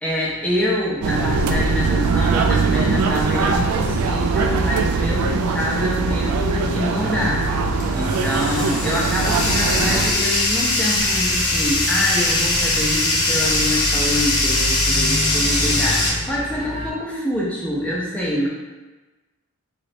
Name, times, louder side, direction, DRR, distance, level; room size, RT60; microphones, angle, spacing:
voice 1, 0.0-7.4 7.9-18.5, equal, 5° left, -5 dB, 0.5 m, -25 dB
sound 1, 1.0-10.1, right 4 dB, 85° right, 0.3 m, -21 dB
Bathtub (filling or washing), 6.9-16.1, left 2 dB, 80° left, 0.7 m, -22 dB
sound 2, 9.4-16.9, equal, 25° right, 0.8 m, -30 dB
3.1 x 3.0 x 2.6 m, 1.2 s
head